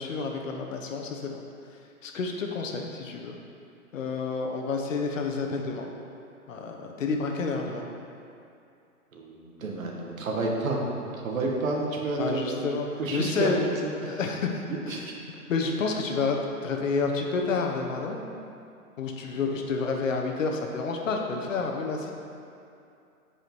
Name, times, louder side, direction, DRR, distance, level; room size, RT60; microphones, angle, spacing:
voice 1, 0.0-1.4 2.0-3.4 3.9-5.9 6.5-7.8 12.2-13.7 14.1-14.5 14.8-15.1 15.5-18.2 19.0-22.1, left 4 dB, 55° left, 2 dB, 1.0 m, -29 dB
voice 2, 9.1-12.6 13.0-14.2 14.7-15.2 19.3-19.6, right 2 dB, 60° right, -1 dB, 1.5 m, -30 dB
8.0 x 5.0 x 4.5 m, 2.6 s
hypercardioid pair, 155°, 45 cm